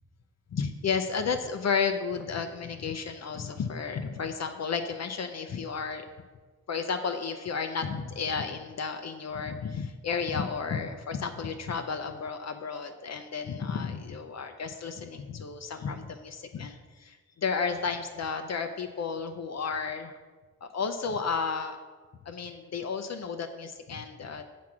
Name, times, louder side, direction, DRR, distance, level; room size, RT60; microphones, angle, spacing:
voice 1, 0.5-6.1 6.7-20.1 20.6-21.8 22.3-24.4, left 5 dB, 55° left, 6 dB, 0.6 m, -32 dB
8.4 x 6.0 x 4.8 m, 1.4 s
wide cardioid pair, 170°, 31 cm